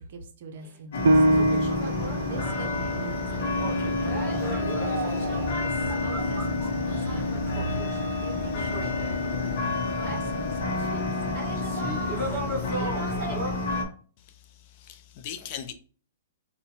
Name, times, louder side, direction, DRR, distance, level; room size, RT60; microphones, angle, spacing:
voice 1, 0.0-1.4 2.3-7.4 8.2-12.1, right 3 dB, 50° right, 0.6 m, -42 dB
sound 1, 0.6-0.7 1.0-10.2 10.7-11.0 11.3-13.5, right 2 dB, 10° right, 1.5 m, -37 dB
sound 2, 0.9-13.8, left 3 dB, 55° left, 0.7 m, -29 dB
Piano, 1.1-6.2 6.7-6.8 7.4-7.9, right 1 dB, 80° right, 0.3 m, -28 dB
voice 2, 14.5-15.7, left 9 dB, 35° left, 0.4 m, -39 dB
4.2 x 2.1 x 2.8 m
hypercardioid pair, 170°, 0 cm